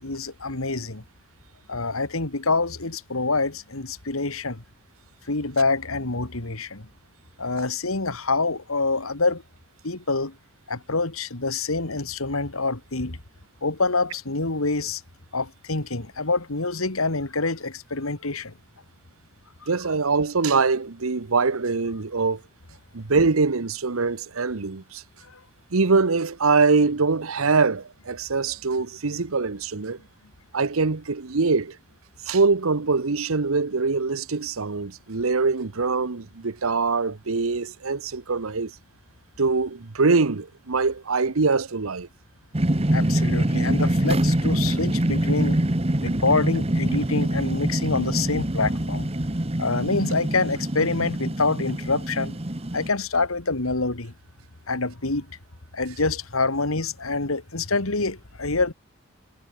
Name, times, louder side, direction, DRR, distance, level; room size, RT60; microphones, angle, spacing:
voice 1, 0.0-1.0 1.7-4.6 5.3-6.9 7.4-9.4 9.8-10.3 10.7-13.2 13.6-15.0 15.3-18.5 42.9-45.6 46.0-49.1 49.6-52.4 52.7-54.1 54.7-55.3 55.7-58.7, left 3 dB, 85° left, 2.4 m, -26 dB
voice 2, 19.7-22.4 22.9-25.0 25.7-30.0 30.5-31.8 32.3-38.7 39.4-42.1, right 4 dB, 80° right, 1.0 m, -23 dB
sound 1, 42.5-52.9, right 1 dB, 30° right, 1.3 m, -24 dB
head